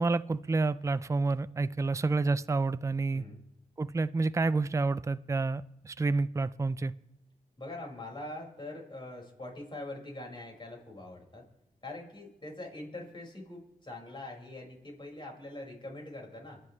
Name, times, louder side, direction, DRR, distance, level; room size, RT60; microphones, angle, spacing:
voice 1, 0.0-3.2 3.8-6.9, right 3 dB, 20° right, 0.5 m, -29 dB
voice 2, 7.6-11.5 11.8-16.6, left 2 dB, 35° left, 5.5 m, -43 dB
27.5 x 9.3 x 3.2 m
cardioid pair, 55°, 14 cm